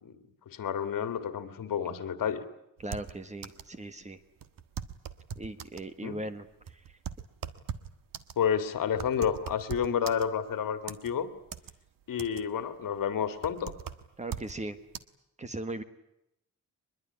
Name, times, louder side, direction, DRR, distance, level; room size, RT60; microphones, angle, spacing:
voice 1, 0.5-2.4 6.0-6.2 8.4-11.3 12.1-13.7, left 8 dB, 70° left, 10 dB, 2.3 m, -30 dB
voice 2, 2.8-4.2 5.3-7.0 14.2-14.8 15.4-15.8, right 2 dB, 20° right, 11 dB, 1.4 m, -39 dB
sound 1, 2.8-3.8 4.0-4.1 4.4-5.9 6.4-10.5 10.9-11.7 12.0-12.6 13.0-14.6 14.9-15.0, right 8 dB, 70° right, 1.5 m, -40 dB
23.0 x 22.0 x 9.8 m, 0.81 s
wide cardioid pair, 170°, 34 cm